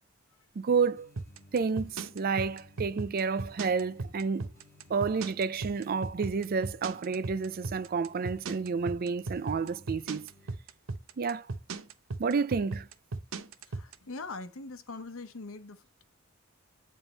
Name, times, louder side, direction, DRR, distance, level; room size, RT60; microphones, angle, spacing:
voice 1, 0.6-1.1 1.5-4.5 4.9-10.3 11.2-11.5 12.2-12.9, right 5 dB, 45° right, 0.4 m, -30 dB
sound 1, 1.0-10.5, left 1 dB, 15° left, 3.1 m, -58 dB
sound 2, 1.2-13.9, right 3 dB, 75° right, 0.8 m, -36 dB
voice 2, 13.7-16.0, left 3 dB, 85° left, 0.9 m, -42 dB
9.0 x 3.6 x 3.9 m
head